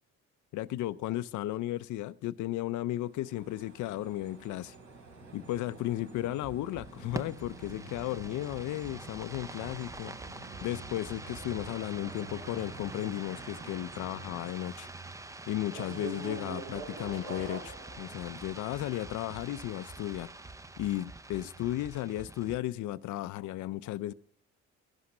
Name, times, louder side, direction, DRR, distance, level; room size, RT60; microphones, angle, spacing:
voice 1, 0.5-4.8 5.3-10.1 10.6-14.9 15.5-20.3 20.8-24.1, left 14 dB, 75° left, 0.5 m, -35 dB
sound 1, 2.9-14.5, right 3 dB, 70° right, 4.1 m, -50 dB
sound 2, 4.8-22.6, right 2 dB, 10° right, 0.5 m, -46 dB
sound 3, 10.5-14.9 15.7-19.3, right 4 dB, 55° right, 2.4 m, -46 dB
14.5 x 11.5 x 6.5 m
cardioid pair, 90°, 30 cm